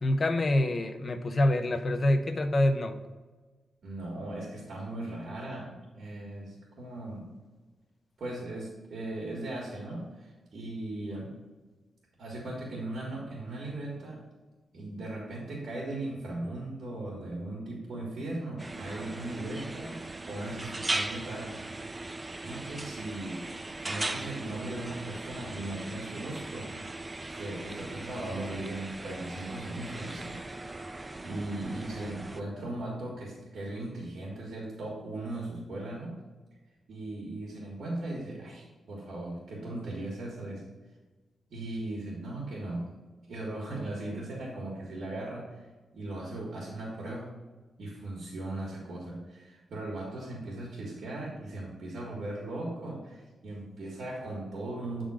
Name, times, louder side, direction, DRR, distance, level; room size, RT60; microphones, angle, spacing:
voice 1, 0.0-3.0, left 1 dB, 30° left, 7 dB, 0.6 m, -26 dB
voice 2, 3.8-7.3 8.2-11.3 12.2-14.2 14.7-20.0 20.3-21.8 22.4-23.4 23.8-26.7 27.3-30.7 31.2-36.1 36.9-40.6 41.5-42.9 43.3-45.6 45.9-47.3 47.8-55.0, right 2 dB, 60° right, -3 dB, 1.7 m, -38 dB
sound 1, 18.6-32.4, right 2 dB, 15° right, 0.3 m, -39 dB
8.4 x 3.8 x 4.9 m, 1.3 s
wide cardioid pair, 145°, 0 cm